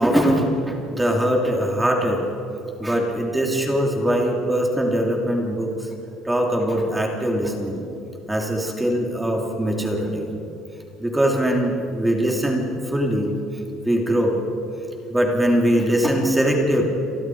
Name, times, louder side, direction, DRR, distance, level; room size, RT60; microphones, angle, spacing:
voice 1, 0.0-2.2 2.8-5.9 6.2-7.8 8.3-10.3 11.0-13.3 13.8-14.4 15.1-16.8, equal, 5° right, 0 dB, 3.0 m, -21 dB
29.5 x 23.0 x 4.7 m, 2.7 s
cardioid pair, 170°, 0 cm